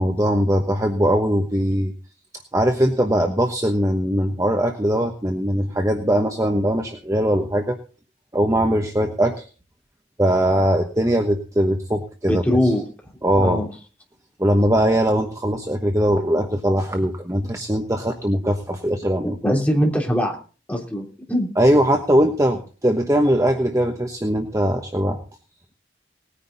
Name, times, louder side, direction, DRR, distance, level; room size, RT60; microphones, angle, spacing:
voice 1, 0.0-1.9 2.5-7.8 8.3-9.5 10.2-12.4 13.2-13.6 14.4-19.4 21.6-25.2, equal, 15° right, 4 dB, 1.1 m, -20 dB
voice 2, 12.3-12.8 13.4-13.7 19.2-20.4 20.7-21.5, equal, 10° left, -1 dB, 3.2 m, -22 dB
19.0 x 9.9 x 4.0 m, 0.38 s
head